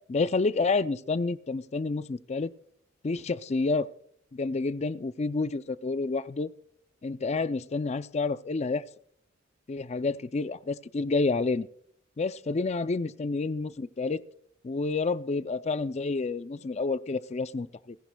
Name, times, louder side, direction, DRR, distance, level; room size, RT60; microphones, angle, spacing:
voice 1, 0.1-2.5 3.0-3.9 4.3-6.5 7.0-8.8 9.7-11.7 12.2-14.2 14.6-18.0, left 3 dB, 35° left, 14 dB, 0.4 m, -29 dB
29.5 x 10.5 x 2.3 m, 0.63 s
head